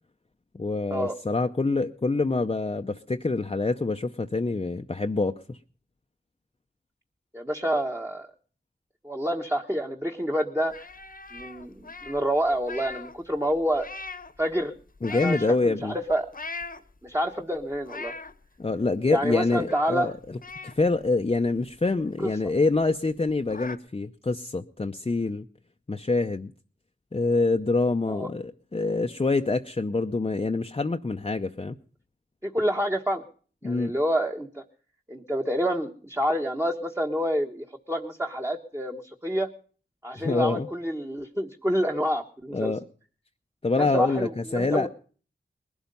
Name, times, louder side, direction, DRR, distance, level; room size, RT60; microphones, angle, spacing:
voice 1, 0.5-5.6 15.0-15.9 18.6-25.5 25.9-26.5 27.1-31.8 33.6-33.9 40.2-40.7 42.5-42.8 43.6-44.9, left 3 dB, 30° left, 5 dB, 0.7 m, -26 dB
voice 2, 7.3-8.3 9.0-10.9 11.3-13.9 14.4-14.7 15.1-16.3 17.0-18.1 19.1-20.1 22.2-22.3 28.1-28.3 32.4-33.2 33.6-34.6 35.1-39.5 40.0-42.7 43.8-44.9, equal, 15° right, 2 dB, 1.3 m, -28 dB
sound 1, 10.7-13.2 13.5-14.4 14.9-15.5 16.1-17.1 17.6-18.3 18.8-18.9 19.2-20.0 20.4-21.9 22.3-22.4 22.7-22.8 23.1-23.8, left 4 dB, 45° left, 1.1 m, -40 dB
20.5 x 12.0 x 5.4 m, 0.43 s
wide cardioid pair, 70°, 20 cm